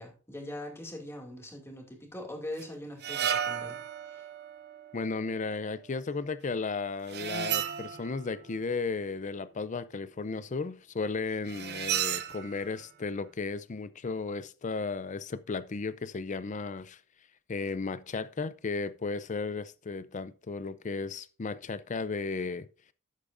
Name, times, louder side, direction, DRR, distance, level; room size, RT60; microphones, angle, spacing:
voice 1, 0.0-3.8 4.1-4.3, left 1 dB, 15° left, 2.3 m, -42 dB
sound 1, 2.6-2.7 3.0-5.9 7.1-8.5 11.5-12.7, right 9 dB, 55° right, 0.6 m, -34 dB
voice 2, 4.9-17.0 17.5-22.7, left 4 dB, 40° left, 0.5 m, -34 dB
12.0 x 8.5 x 2.6 m
head